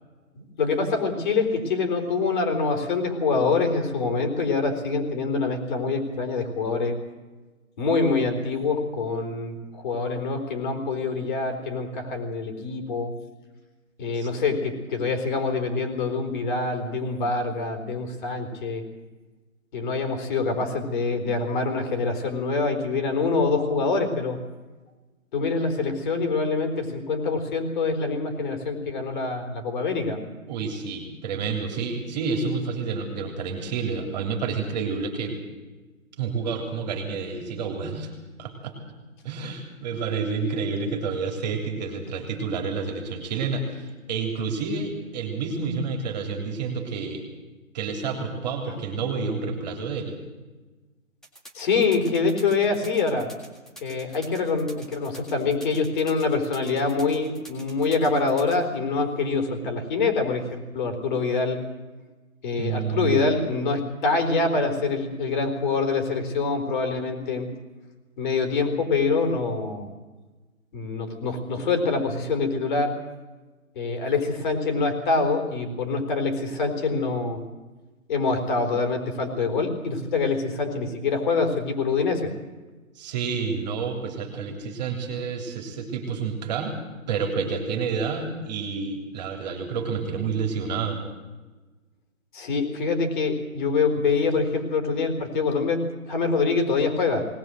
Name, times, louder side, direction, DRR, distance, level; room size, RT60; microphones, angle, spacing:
voice 1, 0.3-7.0 7.8-13.1 14.0-18.9 19.7-24.4 25.3-30.2 51.5-53.3 53.8-61.6 62.4-67.5 68.2-69.9 70.7-73.0 73.8-77.5 78.1-82.3 92.3-97.3, left 4 dB, 35° left, 5 dB, 4.0 m, -25 dB
voice 2, 30.5-35.4 36.2-38.1 38.4-38.7 39.2-47.2 47.7-50.2 62.6-63.3 83.0-86.7 87.1-91.0, right 5 dB, 30° right, 3 dB, 3.3 m, -29 dB
sound 1, 51.2-58.6, right 1 dB, ahead, 1.9 m, -46 dB
19.5 x 19.5 x 7.7 m, 1.2 s
hypercardioid pair, 155°, 41 cm